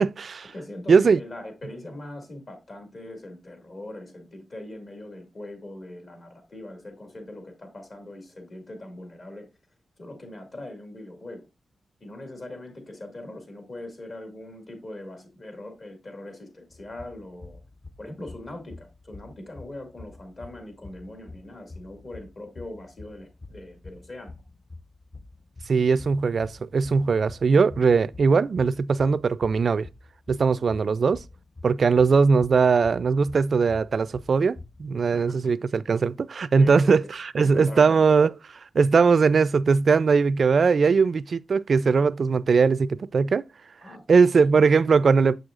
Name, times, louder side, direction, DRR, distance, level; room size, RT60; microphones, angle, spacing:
voice 1, 0.0-0.5 0.9-1.2 25.7-29.9 30.3-31.2 31.6-43.4 44.1-45.3, right 5 dB, 60° right, 0.3 m, -20 dB
voice 2, 0.5-9.5 10.0-11.5 12.0-17.6 18.0-24.3 35.1-35.5 36.5-37.0 37.4-38.1 43.8-44.0 44.5-44.6, left 1 dB, 50° left, 2.1 m, -41 dB
sound 1, 16.7-35.0, left 3 dB, 35° left, 0.6 m, -47 dB
6.6 x 6.2 x 2.4 m
cardioid pair, 80°, 0 cm